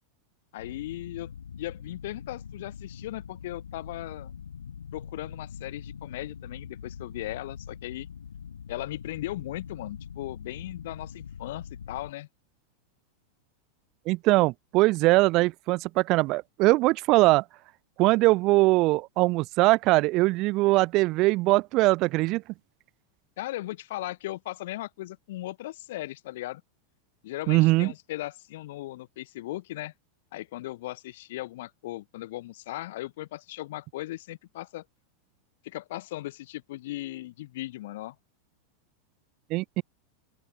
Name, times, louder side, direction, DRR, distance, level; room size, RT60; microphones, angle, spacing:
voice 1, 0.5-1.3 1.6-4.4 4.9-8.1 8.7-12.3 23.4-26.6 27.2-29.9 30.3-34.8 35.6-38.2, left 16 dB, 60° left, 0.9 m, -37 dB
sound 1, 0.6-12.1, left 7 dB, 75° left, 4.7 m, -43 dB
voice 2, 14.1-17.4 18.0-22.4 27.5-27.9 39.5-39.8, right 21 dB, 45° right, 0.3 m, -22 dB
open air
figure-of-eight pair, 90°, 0 cm